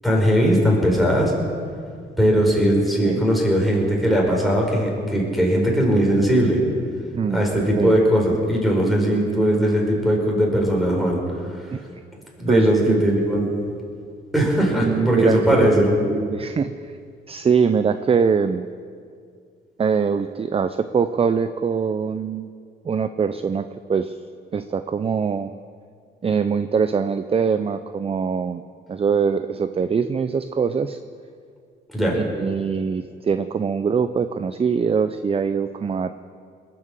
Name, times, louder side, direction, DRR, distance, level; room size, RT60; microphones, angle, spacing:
voice 1, 0.0-1.3 2.2-6.6 7.3-11.2 12.4-13.5 14.3-15.9 31.9-32.2, equal, ahead, -2 dB, 5.0 m, -19 dB
voice 2, 12.5-13.0 14.7-15.7 16.0-17.0 17.3-18.7 19.8-22.5 22.8-24.2 24.5-25.5 26.2-28.6 28.9-31.0 32.2-36.2, right 6 dB, 30° right, 11 dB, 0.5 m, -23 dB
20.5 x 8.6 x 7.4 m, 2.2 s
cardioid pair, 90°, 20 cm